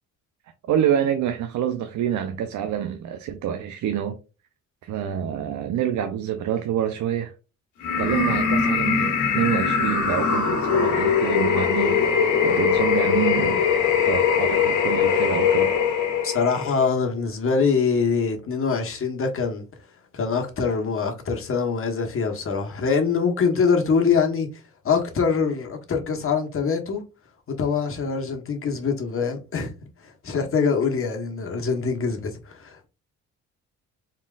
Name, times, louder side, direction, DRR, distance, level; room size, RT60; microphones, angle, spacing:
voice 1, 0.7-4.2 4.8-7.3 8.0-13.6 14.0-15.7, right 9 dB, 75° right, 0.6 m, -27 dB
sound 1, 7.8-16.8, left 6 dB, 80° left, 1.5 m, -21 dB
voice 2, 16.2-19.6 20.1-24.5 24.8-27.0 27.5-29.7 30.0-32.9, left 5 dB, 45° left, 1.3 m, -24 dB
4.3 x 3.6 x 2.5 m
cardioid pair, 90°, 30 cm